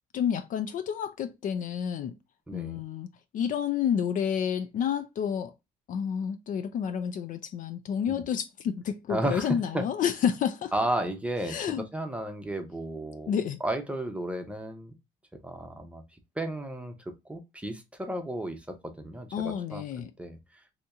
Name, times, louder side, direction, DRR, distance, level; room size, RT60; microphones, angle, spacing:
voice 1, 0.1-2.2 2.5-3.1 3.3-5.5 5.9-10.7 11.5-11.9 13.3-13.6 19.3-20.1, left 8 dB, 50° left, 0.4 m, -30 dB
voice 2, 2.5-2.8 8.1-8.2 9.1-9.9 10.7-13.3 13.6-14.9 15.4-19.8 20.2-20.4, right 1 dB, 5° right, 0.7 m, -33 dB
2.8 x 2.8 x 3.4 m
cardioid pair, 110°, 17 cm